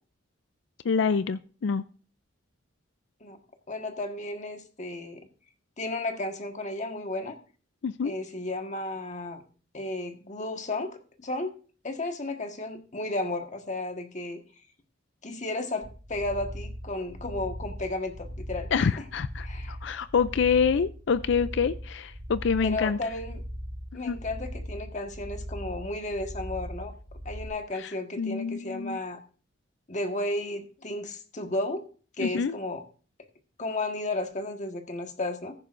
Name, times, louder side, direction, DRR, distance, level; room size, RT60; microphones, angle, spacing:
voice 1, 0.8-1.8 7.8-8.1 18.7-23.0 24.1-24.2 27.8-27.9 28.2-29.0 32.2-32.5, left 6 dB, 65° left, 14 dB, 0.4 m, -26 dB
voice 2, 3.7-5.3 5.8-7.4 8.0-9.4 9.7-10.9 11.2-11.5 11.8-14.4 15.2-19.0 19.4-19.8 22.6-23.4 23.9-26.9 27.2-29.2 29.9-31.9 32.2-32.8 33.6-35.5, left 2 dB, 40° left, 5 dB, 1.4 m, -33 dB
sound 1, 15.8-27.5, equal, 20° right, 4.7 m, -39 dB
15.0 x 10.5 x 2.5 m, 0.38 s
head